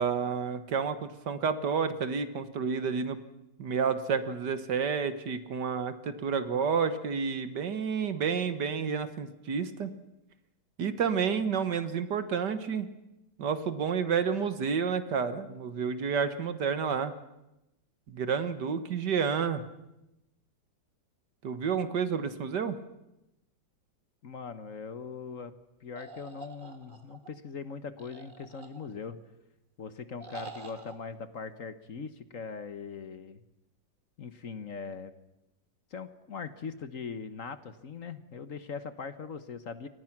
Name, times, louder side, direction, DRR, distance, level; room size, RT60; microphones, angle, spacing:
voice 1, 0.0-3.2 3.6-9.9 10.8-12.9 13.4-17.2 18.1-19.6 21.4-22.8, right 6 dB, 65° right, 11 dB, 1.8 m, -30 dB
voice 2, 24.2-25.5 25.8-29.2 29.8-33.4 34.2-35.1 35.9-39.9, left 5 dB, 50° left, 11 dB, 1.3 m, -41 dB
sound 1, 26.0-27.3 28.0-29.1 30.2-31.0, right 3 dB, 25° right, 2.1 m, -46 dB
29.0 x 24.0 x 6.0 m, 0.91 s
omnidirectional pair, 2.1 m